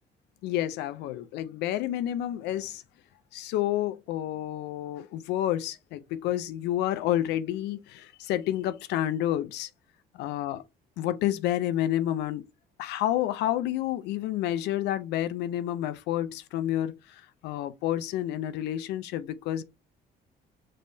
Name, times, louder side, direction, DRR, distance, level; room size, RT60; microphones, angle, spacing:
voice 1, 0.4-2.8 3.3-9.7 10.2-10.6 11.0-12.4 12.8-19.6, left 12 dB, 85° left, 0.5 m, -29 dB
5.3 x 3.2 x 2.7 m
cardioid pair, 110°, 17 cm